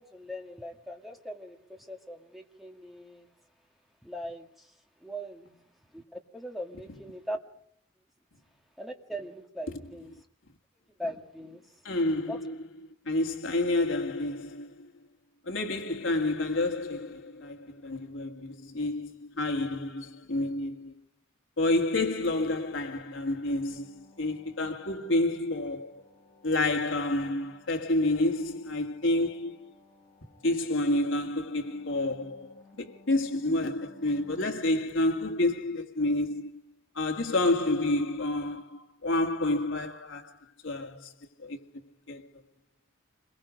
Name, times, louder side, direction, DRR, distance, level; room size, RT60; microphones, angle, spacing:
voice 1, 0.0-3.3 4.0-4.8 5.0-7.4 8.8-10.1 11.0-11.8 12.3-12.4, equal, ahead, 1.9 m, -40 dB
voice 2, 11.8-12.6 13.1-14.9 15.5-20.9 21.6-26.0 26.4-29.7 30.4-36.6 37.0-40.4 40.6-41.1 41.4-41.6 42.1-42.2, left 2 dB, 75° left, 2.0 m, -29 dB
sound 1, 23.5-34.5, left 3 dB, 15° left, 6.0 m, -59 dB
27.0 x 22.0 x 5.1 m
head